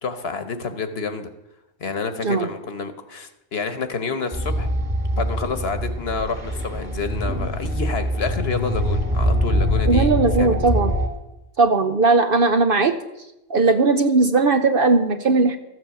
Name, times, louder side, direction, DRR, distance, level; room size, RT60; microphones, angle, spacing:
voice 1, 0.0-1.3 1.8-4.7 5.1-10.1 10.4-10.5, left 4 dB, 55° left, 9 dB, 1.3 m, -28 dB
sound 1, 4.3-11.1, equal, 25° right, 2.5 m, -23 dB
voice 2, 9.8-10.9 11.6-13.0 13.5-15.6, right 3 dB, 50° right, 8 dB, 0.8 m, -18 dB
14.0 x 8.0 x 7.1 m, 0.93 s
omnidirectional pair, 1.3 m